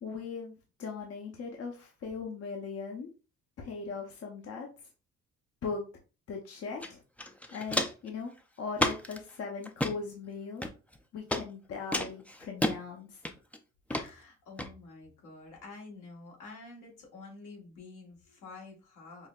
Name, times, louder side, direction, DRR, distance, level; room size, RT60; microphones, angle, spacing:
voice 1, 0.0-3.1 3.6-4.7 5.6-5.8 6.3-7.0 7.5-8.3 8.6-10.7 11.1-13.2, left 5 dB, 55° left, 1 dB, 0.8 m, -39 dB
Walk footsteps, 6.8-6.9 7.2-8.1 8.8-9.2 9.6-9.9 10.6-11.0 11.3-11.4 11.9-12.8 13.2-13.6 13.9-14.1 14.6-14.7, left 1 dB, 5° left, 0.4 m, -31 dB
voice 2, 13.9-19.3, left 3 dB, 80° left, 0 dB, 1.6 m, -48 dB
5.4 x 2.1 x 2.4 m, 0.32 s
cardioid pair, 90°, 30 cm